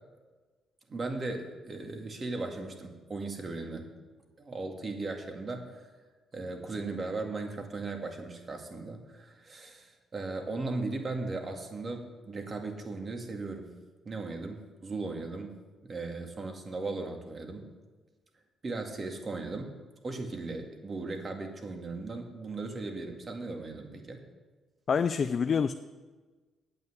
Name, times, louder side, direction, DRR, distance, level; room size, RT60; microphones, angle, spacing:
voice 1, 0.9-3.9 4.4-5.9 6.3-13.7 14.1-15.5 15.8-17.7 18.6-19.7 20.0-24.2, right 3 dB, 35° right, 3 dB, 2.1 m, -37 dB
voice 2, 24.9-25.7, left 6 dB, 50° left, 10 dB, 0.4 m, -26 dB
8.9 x 8.6 x 8.1 m, 1.3 s
cardioid pair, 90°, 0 cm